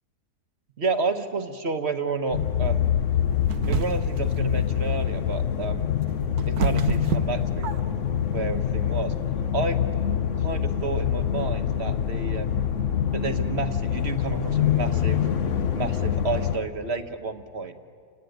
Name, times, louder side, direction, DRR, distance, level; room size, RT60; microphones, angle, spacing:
voice 1, 0.8-2.9 3.7-6.0 6.5-7.7 8.3-9.1 9.5-9.8 10.4-12.6 13.1-15.2 15.7-17.8, right 4 dB, 40° right, 7 dB, 1.5 m, -30 dB
sound 1, 2.3-16.6, left 9 dB, 55° left, 1.2 m, -25 dB
sound 2, 3.5-4.3 5.8-8.1, right 6 dB, 70° right, 1.5 m, -28 dB
29.5 x 19.0 x 9.4 m, 2.2 s
omnidirectional pair, 1.7 m